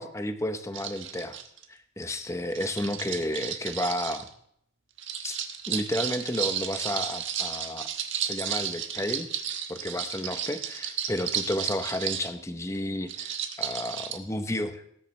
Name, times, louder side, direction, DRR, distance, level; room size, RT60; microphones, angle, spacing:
voice 1, 0.0-1.4 1.7-4.3 5.2-5.4 5.7-7.9 8.2-9.3 9.7-14.9, left 1 dB, 15° left, 8 dB, 0.8 m, -32 dB
sound 1, 0.7-1.6 2.5-4.3 5.0-12.3 13.1-14.2, right 9 dB, 80° right, 1.3 m, -33 dB
18.5 x 9.7 x 3.2 m, 0.70 s
head